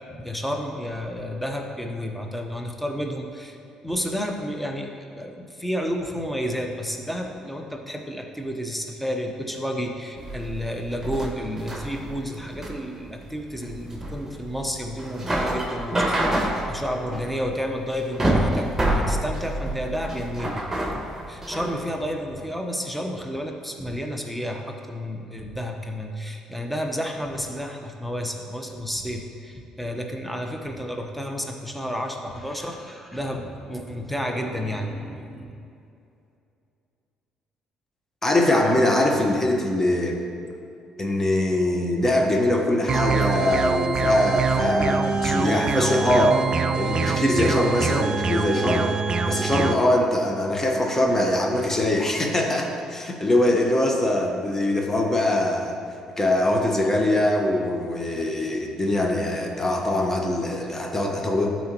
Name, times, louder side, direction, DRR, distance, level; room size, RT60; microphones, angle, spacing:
voice 1, 0.1-3.6 3.8-20.7 20.9-35.6, equal, 5° left, 2 dB, 1.0 m, -31 dB
sound 1, 10.2-21.7, right 1 dB, 15° right, 1.6 m, -27 dB
voice 2, 38.2-40.2 41.0-46.4 46.8-48.9 49.2-55.7 56.2-61.5, left 1 dB, 20° left, 1 dB, 1.3 m, -22 dB
sound 2, 42.9-49.7, right 5 dB, 40° right, 0.4 m, -24 dB
13.0 x 4.4 x 3.0 m, 2.6 s
hypercardioid pair, 50°, 2 cm